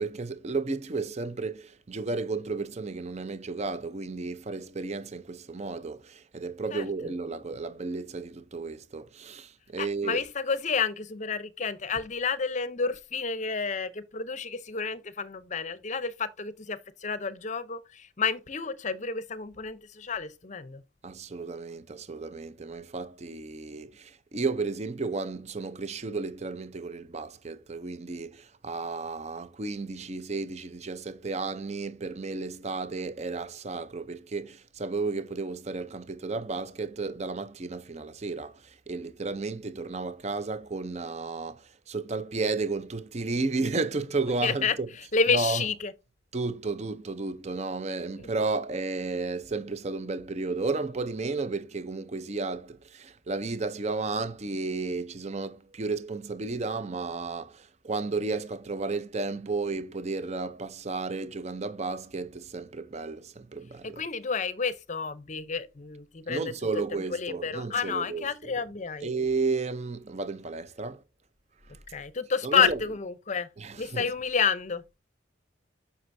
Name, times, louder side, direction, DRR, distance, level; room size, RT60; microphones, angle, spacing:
voice 1, 0.0-10.2 21.0-44.9 45.3-45.7 46.3-64.0 66.3-68.6 69.0-71.0 71.7-71.8 72.4-72.8 73.6-74.1, right 3 dB, 35° right, 0.6 m, -33 dB
voice 2, 9.8-20.8 44.4-44.7 45.1-45.9 48.2-48.3 64.0-66.5 67.1-69.1 71.9-73.5 73.8-75.0, left 5 dB, 40° left, 0.6 m, -30 dB
7.8 x 6.0 x 2.6 m
head